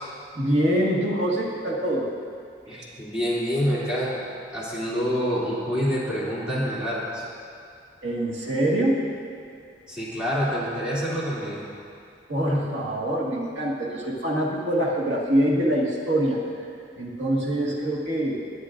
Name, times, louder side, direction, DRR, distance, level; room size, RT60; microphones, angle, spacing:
voice 1, 0.3-2.1 2.7-2.8 8.0-9.1 12.3-16.4 17.0-18.4, right 1 dB, 80° right, -3 dB, 1.7 m, -24 dB
voice 2, 2.7-4.2 4.5-7.2 9.9-11.7, equal, 5° right, -9 dB, 2.6 m, -27 dB
19.5 x 9.6 x 2.5 m, 2.4 s
head